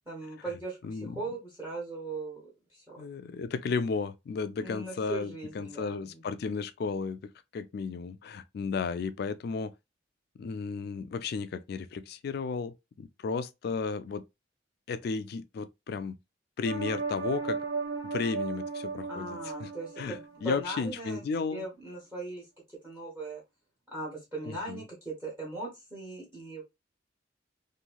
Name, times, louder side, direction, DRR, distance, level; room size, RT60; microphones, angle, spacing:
voice 1, 0.1-3.0 4.6-6.2 19.1-21.2 21.5-23.4 23.9-26.6, right 2 dB, 15° right, 1.0 m, -39 dB
voice 2, 0.8-1.2 3.0-9.7 10.4-14.2 14.9-16.2 16.6-17.6 18.0-19.7 20.0-21.6 24.5-24.8, left 4 dB, 55° left, 0.3 m, -34 dB
sound 1, 16.6-20.9 21.2-21.3, right 4 dB, 65° right, 1.3 m, -36 dB
3.0 x 2.7 x 2.2 m
head